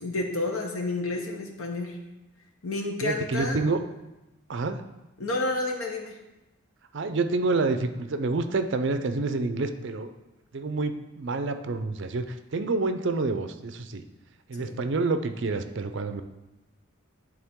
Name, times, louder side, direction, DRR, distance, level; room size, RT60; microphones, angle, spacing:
voice 1, 0.0-2.0 2.6-3.6 5.2-6.2 14.6-14.8, left 2 dB, 85° left, 2 dB, 1.1 m, -30 dB
voice 2, 3.0-3.8 4.5-4.8 6.9-10.1 10.5-14.0 14.5-16.2, right 3 dB, 55° right, 9 dB, 0.5 m, -28 dB
11.0 x 3.7 x 3.6 m, 0.99 s
head